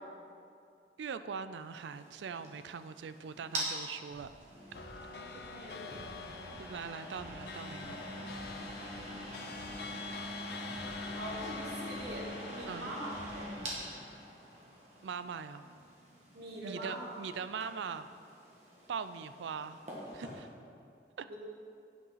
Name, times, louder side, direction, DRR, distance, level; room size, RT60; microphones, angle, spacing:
voice 1, 1.0-4.3 5.6-5.8 6.6-8.0 12.7-12.9 15.0-15.6 16.6-18.1 18.9-19.8 20.1-20.5 21.2-21.3, right 6 dB, 85° right, 12 dB, 0.4 m, -41 dB
sound 1, 1.7-20.4, right 1 dB, 40° right, 1.6 m, -45 dB
sound 2, 4.1-4.4 4.7-5.6 5.9-6.8 7.1-8.0 8.3-9.2 9.5-10.4 10.7-11.6 11.9-12.8 13.1-13.7, equal, 10° right, 1.8 m, -55 dB
sound 3, 4.7-14.4, left 5 dB, 60° left, 0.4 m, -46 dB
voice 2, 5.3-6.3 11.1-13.1 13.3-13.5 16.3-17.1 21.3-21.4, right 1 dB, 65° right, -3 dB, 1.5 m, -43 dB
9.3 x 5.5 x 5.7 m, 2.4 s
head